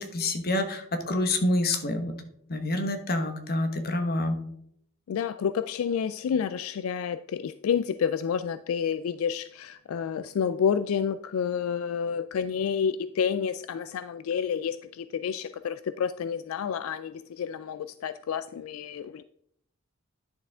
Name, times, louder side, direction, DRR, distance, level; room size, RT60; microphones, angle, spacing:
voice 1, 0.0-2.1 2.5-4.3, left 1 dB, 50° left, 7 dB, 1.2 m, -27 dB
voice 2, 5.1-19.2, left 7 dB, 75° left, 13 dB, 0.3 m, -29 dB
10.5 x 6.7 x 3.6 m, 0.72 s
head